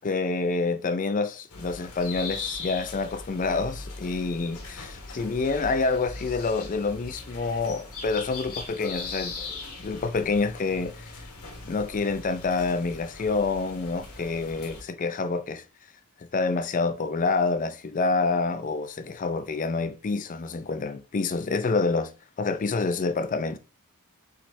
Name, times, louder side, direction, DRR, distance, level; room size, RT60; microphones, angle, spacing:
voice 1, 0.0-11.0 11.6-15.6 16.2-22.1 22.4-23.6, left 3 dB, 35° left, 0.4 m, -27 dB
sound 1, 1.5-14.8, left 3 dB, 75° left, 1.4 m, -40 dB
5.7 x 3.3 x 2.6 m
head